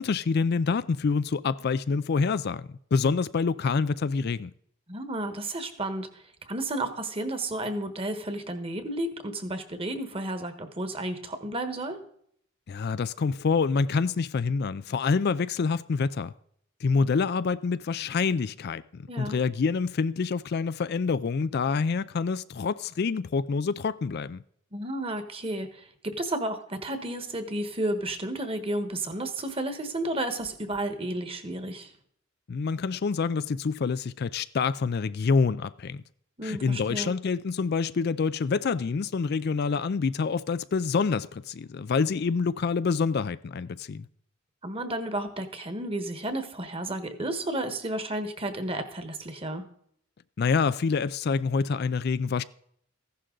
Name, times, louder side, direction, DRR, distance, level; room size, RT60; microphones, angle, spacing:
voice 1, 0.0-4.5 12.7-16.3 16.8-24.4 32.5-36.0 36.4-44.0 50.4-52.4, left 5 dB, 50° left, 0.4 m, -27 dB
voice 2, 4.9-6.1 6.5-12.0 19.1-19.4 24.7-31.9 36.4-37.1 44.6-49.6, right 1 dB, 25° right, 1.3 m, -32 dB
15.0 x 11.0 x 3.9 m
head